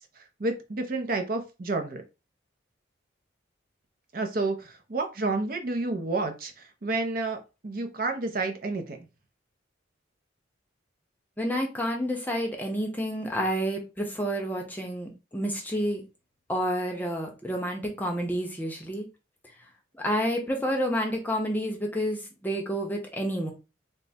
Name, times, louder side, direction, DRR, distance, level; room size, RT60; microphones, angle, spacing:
voice 1, 0.4-2.0 4.1-9.0, right 3 dB, 45° right, 5 dB, 0.5 m, -30 dB
voice 2, 11.4-16.0 16.5-19.1 20.0-23.5, equal, 10° left, 1 dB, 0.6 m, -29 dB
3.4 x 2.1 x 4.1 m, 0.29 s
head